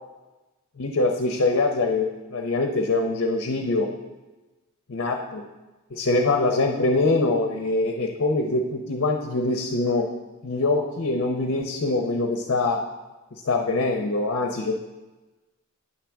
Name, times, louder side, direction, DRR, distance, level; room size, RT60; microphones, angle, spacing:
voice 1, 0.8-3.9 4.9-5.4 5.9-10.1 10.4-12.8 13.4-14.8, left 2 dB, 60° left, 3 dB, 0.7 m, -24 dB
9.5 x 7.5 x 3.4 m, 1.1 s
head